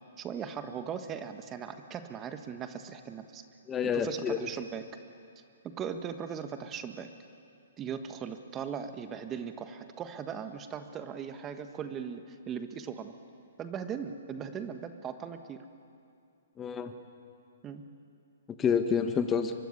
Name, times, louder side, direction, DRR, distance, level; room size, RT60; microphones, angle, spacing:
voice 1, 0.2-3.4 3.9-4.8 5.6-7.1 7.8-13.1 13.6-15.6 17.6-17.9, right 7 dB, 20° right, 8 dB, 1.3 m, -39 dB
voice 2, 3.7-4.5 16.6-16.9 18.6-19.5, left 6 dB, 15° left, 7 dB, 1.3 m, -28 dB
24.0 x 23.0 x 9.7 m, 2.5 s
hypercardioid pair, 140°, 0 cm